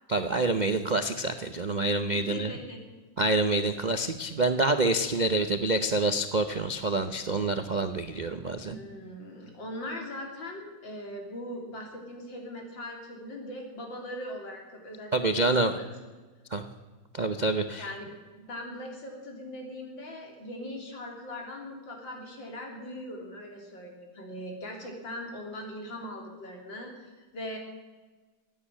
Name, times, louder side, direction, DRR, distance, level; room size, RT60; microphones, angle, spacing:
voice 1, 0.1-2.5 3.2-8.7 15.1-15.7 16.5-16.7 17.1-17.9, right 2 dB, 90° right, 8 dB, 0.4 m, -27 dB
voice 2, 2.1-2.8 8.7-15.8 17.8-27.6, left 1 dB, 85° left, 1 dB, 3.9 m, -40 dB
15.5 x 9.5 x 10.0 m, 1.3 s
omnidirectional pair, 2.0 m